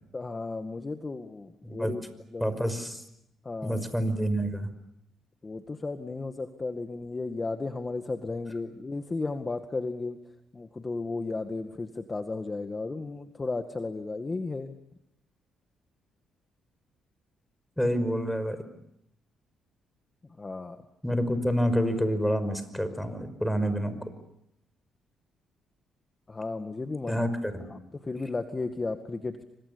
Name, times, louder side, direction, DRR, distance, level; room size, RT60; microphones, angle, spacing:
voice 1, 0.1-2.0 2.3-2.5 3.4-3.9 5.4-10.2 10.5-14.7 20.4-20.8 26.3-27.2 27.7-29.4, left 3 dB, 25° left, 7 dB, 1.9 m, -34 dB
voice 2, 1.6-1.9 2.4-3.0 3.6-4.7 17.8-18.6 21.0-24.0 27.1-27.7, equal, 5° left, 11 dB, 5.4 m, -28 dB
29.5 x 25.5 x 7.0 m, 0.79 s
cardioid pair, 90°, 0 cm